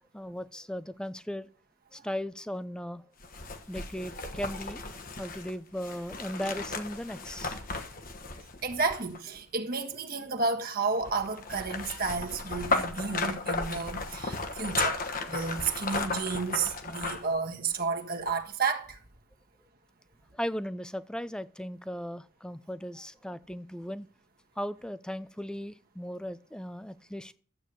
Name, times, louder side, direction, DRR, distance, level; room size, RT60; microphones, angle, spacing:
voice 1, 0.1-1.5 1.9-3.0 3.7-7.6 20.3-24.1 24.6-27.3, equal, 5° left, 0.5 m, -37 dB
sound 1, 3.2-9.4 11.0-17.4 17.7-17.8, left 3 dB, 40° left, 1.3 m, -35 dB
voice 2, 8.6-15.0 15.3-19.0, right 4 dB, 45° right, 1.5 m, -31 dB
12.5 x 8.3 x 6.6 m
head